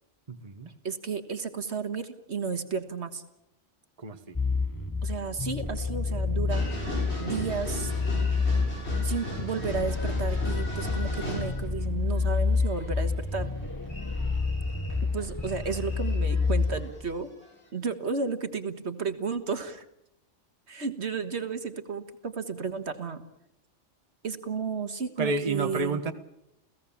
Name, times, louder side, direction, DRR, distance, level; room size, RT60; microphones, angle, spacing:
voice 1, 0.3-0.7 4.0-4.4 25.2-26.1, right 3 dB, 30° right, 8 dB, 1.4 m, -30 dB
voice 2, 0.8-3.2 5.0-6.7 7.2-8.3 9.0-13.5 15.0-17.3 17.7-19.9 20.7-23.2 24.2-26.0, right 5 dB, 65° right, 9 dB, 1.8 m, -33 dB
sound 1, 4.4-16.9, left 4 dB, 15° left, 1.3 m, -29 dB
sound 2, 6.5-11.7 12.1-17.2 17.4-17.5, left 1 dB, 65° left, 7.0 m, -38 dB
29.5 x 17.0 x 7.2 m, 0.82 s
omnidirectional pair, 1.2 m